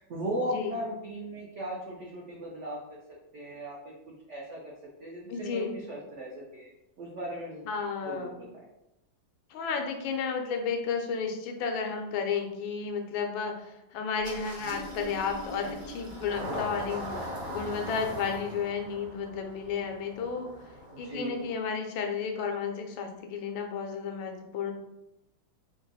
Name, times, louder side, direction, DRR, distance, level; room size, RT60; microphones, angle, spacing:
voice 1, 0.0-3.0 3.3-3.9 4.3-4.7 5.0-6.7 7.0-7.7 8.0-8.5 20.9-21.4, equal, 75° right, -4 dB, 0.6 m, -37 dB
voice 2, 5.3-5.8 7.7-8.3 9.5-20.5 21.0-24.7, left 5 dB, 85° left, 4 dB, 1.4 m, -32 dB
Engine starting, 14.2-21.5, equal, 30° right, 1.3 m, -40 dB
3.8 x 2.3 x 3.9 m, 0.89 s
omnidirectional pair, 2.1 m